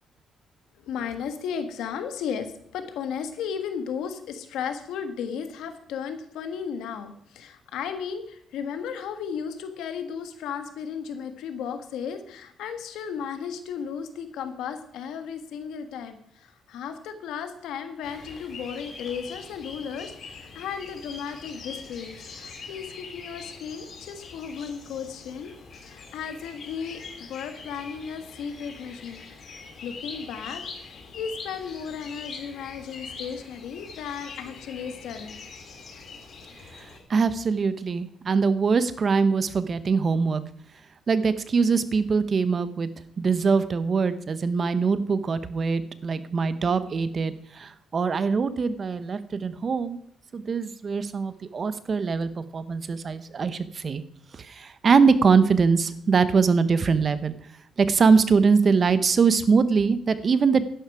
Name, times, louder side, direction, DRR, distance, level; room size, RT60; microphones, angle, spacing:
voice 1, 0.8-25.5 25.8-27.0 27.3-35.4, left 7 dB, 85° left, 8 dB, 1.5 m, -35 dB
sound 1, 18.0-37.0, left 4 dB, 55° left, 3.2 m, -43 dB
voice 2, 36.8-40.4 41.1-42.9 43.2-50.0 50.3-54.0 54.3-57.3 57.8-60.7, right 5 dB, 45° right, 13 dB, 0.9 m, -23 dB
11.5 x 11.0 x 4.8 m, 0.68 s
cardioid pair, 90°, 0 cm